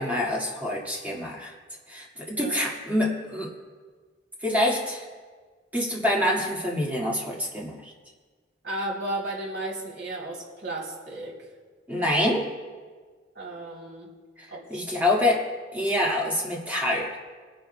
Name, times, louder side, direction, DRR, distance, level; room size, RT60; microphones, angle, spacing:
voice 1, 0.0-1.5 1.9-3.5 4.4-5.0 5.7-7.9 11.9-12.5 14.4-15.4 15.7-17.2, left 1 dB, 10° right, -3 dB, 1.9 m, -26 dB
voice 2, 8.6-11.3 13.3-14.1 14.5-14.8, right 1 dB, 65° right, -3 dB, 3.3 m, -34 dB
23.0 x 10.5 x 2.2 m, 1.5 s
head